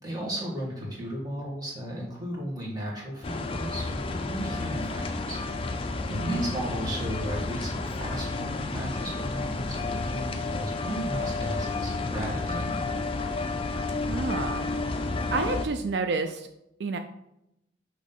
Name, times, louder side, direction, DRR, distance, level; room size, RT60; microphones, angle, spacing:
voice 1, 0.0-5.4 5.8-12.8, right 1 dB, 20° right, -4 dB, 1.7 m, -35 dB
sound 1, 3.2-15.7, left 3 dB, 30° left, 0.4 m, -31 dB
voice 2, 6.1-6.4 14.1-14.7 15.0-16.5 16.8-17.0, right 4 dB, 70° right, 7 dB, 0.4 m, -30 dB
6.1 x 3.1 x 5.3 m, 0.83 s
head